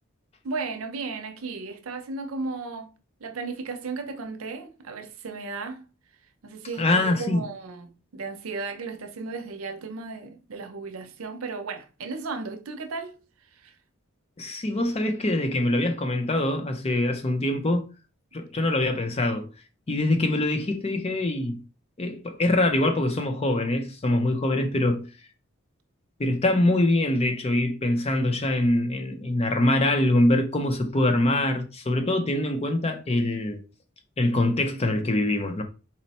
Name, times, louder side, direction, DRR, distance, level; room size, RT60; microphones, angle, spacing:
voice 1, 0.4-2.9 3.2-5.9 6.4-13.2 13.5-13.7, right 4 dB, 80° right, 0.6 m, -35 dB
voice 2, 6.8-7.4 14.4-17.9 18.3-19.5 19.9-21.6 22.0-25.1 26.2-33.6 34.2-35.6, left 1 dB, 30° left, 0.5 m, -24 dB
4.2 x 2.1 x 4.0 m
head